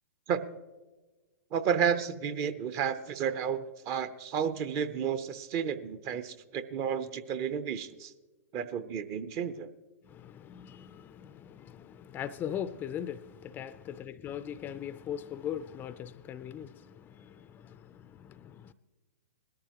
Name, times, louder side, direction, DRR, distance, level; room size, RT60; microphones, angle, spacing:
voice 1, 1.5-8.1 8.5-9.7, right 7 dB, 35° right, 0.8 m, -32 dB
voice 2, 10.0-18.7, left 9 dB, 20° left, 0.5 m, -40 dB
20.5 x 13.5 x 3.0 m
hypercardioid pair, 120°, 9 cm